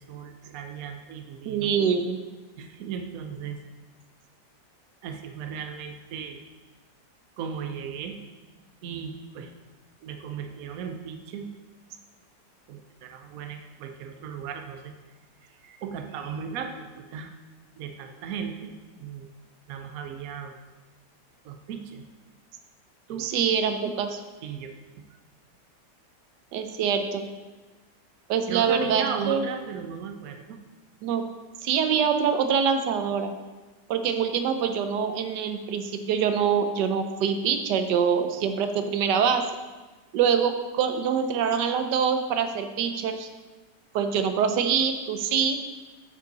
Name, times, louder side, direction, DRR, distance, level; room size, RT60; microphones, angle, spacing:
voice 1, 0.0-1.7 2.6-3.6 5.0-6.4 7.4-8.2 8.8-9.5 10.0-11.5 12.7-14.9 15.4-17.3 17.8-18.7 19.0-19.3 19.7-20.6 21.4-22.0 23.1-23.3 24.4-25.0 28.5-30.6, right 7 dB, 65° right, 6 dB, 1.0 m, -36 dB
voice 2, 1.5-2.2 23.2-24.2 26.5-27.3 28.3-29.4 31.0-31.2 31.6-33.3 33.9-39.4 40.1-43.3 43.9-45.6, right 7 dB, 85° right, 7 dB, 1.3 m, -25 dB
9.2 x 5.5 x 3.9 m, 1.2 s
omnidirectional pair, 1.8 m